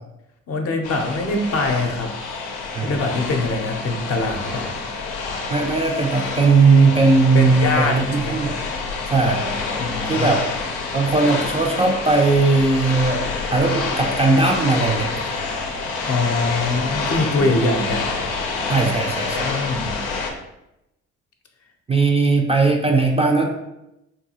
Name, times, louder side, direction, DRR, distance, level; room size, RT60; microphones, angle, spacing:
voice 1, 0.5-2.1 2.8-4.7 7.3-8.4 9.8-10.3 16.0-18.1 19.4-19.9, left 3 dB, 40° left, 3 dB, 0.7 m, -23 dB
sound 1, 0.8-20.3, left 4 dB, 85° left, 0.6 m, -27 dB
voice 2, 5.5-8.6 9.1-9.4 10.1-10.4 10.9-13.2 13.5-15.3 17.3-17.5 18.7-19.6 21.9-23.5, right 3 dB, 15° right, 0 dB, 0.4 m, -18 dB
3.8 x 2.3 x 2.8 m, 0.89 s
hypercardioid pair, 55°, 36 cm